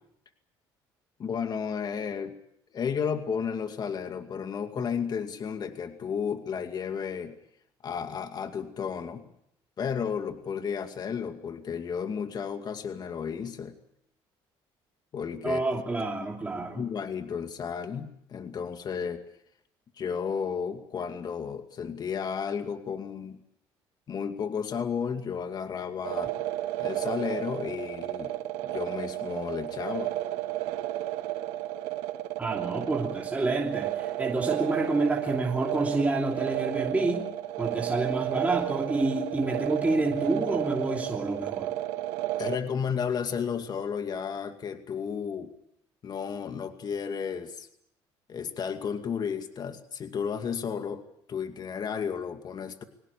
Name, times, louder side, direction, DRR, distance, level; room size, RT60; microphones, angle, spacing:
voice 1, 1.2-2.3 2.7-7.4 7.8-9.3 9.8-13.8 15.1-15.6 16.8-19.2 20.0-23.4 24.1-26.3 26.8-28.3 28.6-30.1 42.4-45.5 46.0-47.7 48.3-51.0 51.3-52.8, left 7 dB, 45° left, 7 dB, 2.4 m, -33 dB
voice 2, 15.4-16.8 32.4-37.3 37.6-41.7, right 2 dB, 15° right, 0 dB, 2.9 m, -28 dB
sound 1, 26.0-42.6, right 14 dB, 90° right, 1.7 m, -32 dB
23.0 x 19.0 x 8.4 m, 0.73 s
cardioid pair, 100°, 10 cm